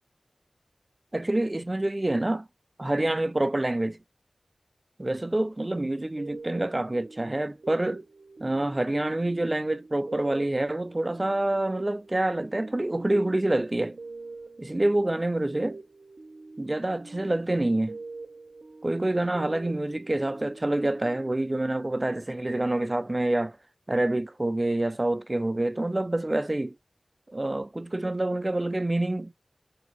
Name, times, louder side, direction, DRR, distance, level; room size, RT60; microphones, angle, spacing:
voice 1, 1.1-2.5 2.8-4.0 5.0-8.0 8.4-14.0 14.6-15.8 16.6-18.0 18.8-23.6 23.9-26.8 27.3-29.3, right 1 dB, 30° right, 0.3 m, -27 dB
sound 1, 6.2-22.5, right 3 dB, 85° right, 0.6 m, -45 dB
2.9 x 2.6 x 2.9 m
wide cardioid pair, 55°, 0 cm